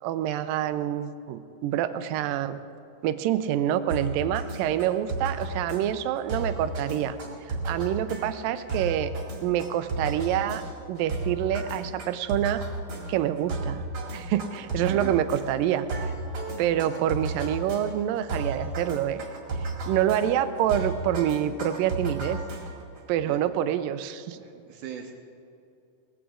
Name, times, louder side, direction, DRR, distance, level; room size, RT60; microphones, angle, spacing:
voice 1, 0.0-2.6 3.0-7.2 7.5-9.1 9.4-10.6 10.9-12.6 13.1-13.8 14.1-15.9 16.6-19.2 19.9-22.4 23.1-24.4, right 11 dB, 90° right, 11 dB, 2.3 m, -27 dB
sound 1, 3.9-23.0, right 2 dB, 40° right, 2.7 m, -34 dB
voice 2, 14.8-15.2 23.2-23.4 24.4-25.1, right 9 dB, 70° right, 3 dB, 2.3 m, -40 dB
19.0 x 15.0 x 3.7 m, 2.6 s
omnidirectional pair, 3.9 m